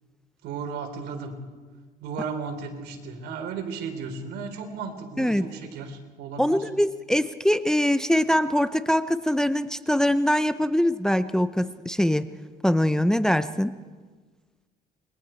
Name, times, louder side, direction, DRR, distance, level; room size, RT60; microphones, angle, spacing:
voice 1, 0.4-1.3 2.0-6.7, right 5 dB, 80° right, 4 dB, 3.7 m, -35 dB
voice 2, 5.2-5.5 6.4-12.3 12.6-13.8, equal, 5° left, 11 dB, 0.6 m, -23 dB
28.5 x 22.5 x 4.5 m, 1.4 s
cardioid pair, 110°, 17 cm